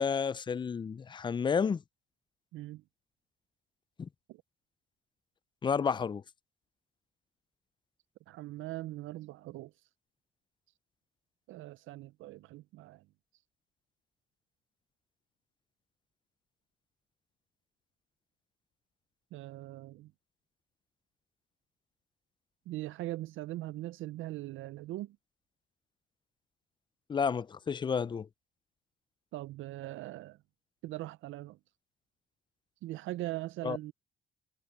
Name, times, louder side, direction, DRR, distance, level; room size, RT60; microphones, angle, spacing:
voice 1, 0.0-1.8 4.0-4.1 5.6-6.2 27.1-28.3 33.6-33.8, left 6 dB, 25° left, 0.4 m, -31 dB
voice 2, 2.5-2.8 4.3-4.4 8.3-9.7 11.5-13.0 19.3-20.1 22.7-25.2 29.3-30.4 30.8-31.6 32.8-33.9, right 16 dB, 80° right, 0.4 m, -41 dB
cardioid pair, 90°, 20 cm